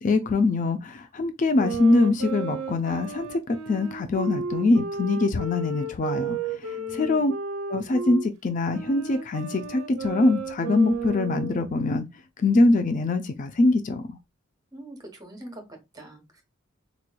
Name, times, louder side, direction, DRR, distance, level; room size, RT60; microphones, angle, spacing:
voice 1, 0.0-6.4 6.7-7.3 7.7-12.0 12.4-14.0, left 2 dB, 40° left, 0.4 m, -23 dB
sound 1, 1.6-8.3 8.7-11.7, right 4 dB, 85° right, 0.5 m, -33 dB
voice 2, 6.8-7.3 14.7-16.4, right 1 dB, 20° right, 1.0 m, -43 dB
4.0 x 3.0 x 2.2 m
head